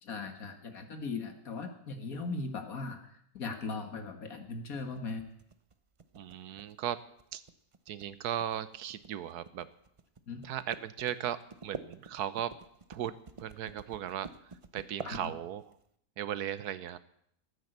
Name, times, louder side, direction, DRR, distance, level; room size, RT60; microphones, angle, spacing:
voice 1, 0.0-5.2 10.3-10.4 15.0-15.3, left 4 dB, 65° left, 6 dB, 2.1 m, -39 dB
sound 1, 4.8-15.8, right 4 dB, 40° right, 0.4 m, -48 dB
voice 2, 6.1-7.0 7.3-7.4 7.9-9.7 10.4-12.5 12.9-14.3 14.7-15.6 16.2-17.0, right 10 dB, 85° right, 15 dB, 1.3 m, -37 dB
15.0 x 9.3 x 8.0 m, 0.70 s
omnidirectional pair, 1.6 m